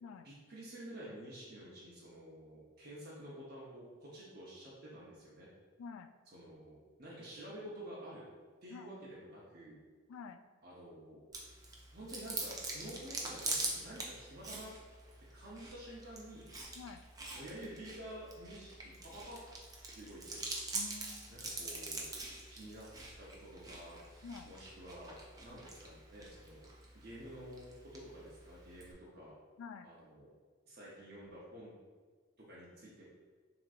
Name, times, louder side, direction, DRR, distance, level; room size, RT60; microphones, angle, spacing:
voice 1, 0.2-5.5 6.3-8.2 8.6-9.8 10.6-11.2 11.9-14.7 15.3-16.5 17.3-19.4 19.9-20.4 21.3-22.1 22.5-22.9 23.2-26.7 26.9-29.3 29.8-30.3 30.7-31.7 32.4-33.1, right 1 dB, 50° right, -7 dB, 0.9 m, -50 dB
voice 2, 5.8-6.1 8.7-8.9 10.1-10.4 16.8-17.1 20.7-21.4 24.2-24.5 29.6-29.9, left 5 dB, 85° left, 9 dB, 0.3 m, -48 dB
Chewing mastication, 11.3-28.9, right 2 dB, 20° right, 0.5 m, -45 dB
6.1 x 3.0 x 2.5 m, 1.5 s
head